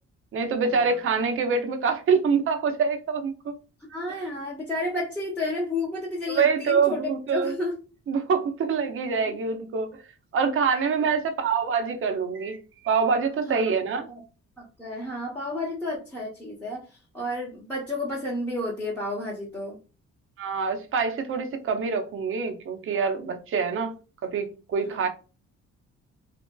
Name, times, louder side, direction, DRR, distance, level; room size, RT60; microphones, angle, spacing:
voice 1, 0.3-3.5 6.3-7.5 8.1-9.9 10.3-12.6 12.8-14.1 20.4-23.9 24.2-25.1, right 5 dB, 45° right, 0.6 m, -25 dB
voice 2, 3.9-7.8 9.3-9.4 10.7-11.1 13.5-13.6 14.1-14.2 14.6-16.9 17.1-19.8 24.9-25.1, left 1 dB, 5° left, 0.8 m, -31 dB
2.8 x 2.5 x 2.2 m
cardioid pair, 90°, 30 cm